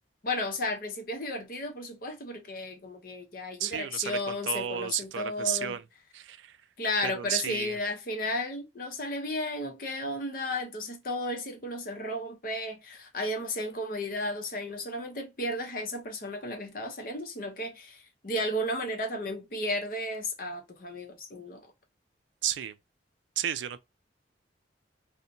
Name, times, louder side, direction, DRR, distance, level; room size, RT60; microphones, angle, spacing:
voice 1, 0.2-5.8 6.8-21.6, left 1 dB, 50° left, 0.7 m, -34 dB
voice 2, 3.6-5.8 6.1-6.6 7.0-7.8 22.4-22.8 23.4-23.8, right 11 dB, 80° right, 0.3 m, -32 dB
2.7 x 2.1 x 2.5 m
head